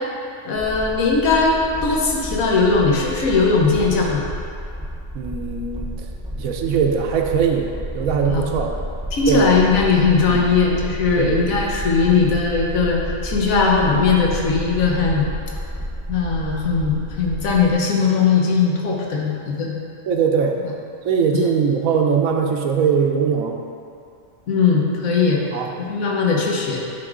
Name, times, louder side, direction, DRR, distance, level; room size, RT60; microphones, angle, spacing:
voice 1, 0.4-4.3 8.3-8.4 9.1-15.3 16.1-19.8 20.6-20.7 21.3-21.4 24.5-26.8, left 4 dB, 75° left, -1 dB, 1.4 m, -19 dB
sound 1, 0.5-17.7, equal, 5° right, 0.4 m, -31 dB
voice 2, 5.1-5.9 6.4-8.7 9.3-9.5 10.3-10.4 11.2-11.4 20.1-20.6 21.0-23.6 25.5-25.7, right 6 dB, 80° right, 3 dB, 1.2 m, -20 dB
10.0 x 4.9 x 3.7 m, 2.4 s
omnidirectional pair, 1.4 m